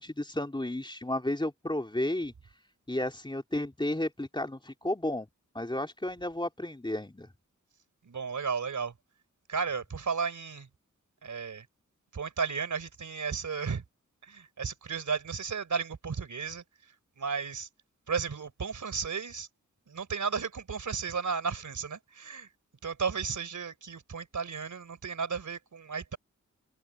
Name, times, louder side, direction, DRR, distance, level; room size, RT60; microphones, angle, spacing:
voice 1, 0.0-2.3 2.9-5.3 5.5-7.3, left 1 dB, 15° left, 3.4 m, -32 dB
voice 2, 8.1-8.9 9.5-10.7 11.2-11.7 12.1-13.8 14.2-16.6 17.2-17.7 18.1-19.5 19.9-22.5 22.8-26.2, right 5 dB, 75° right, 4.0 m, -34 dB
cardioid pair, 65°, 31 cm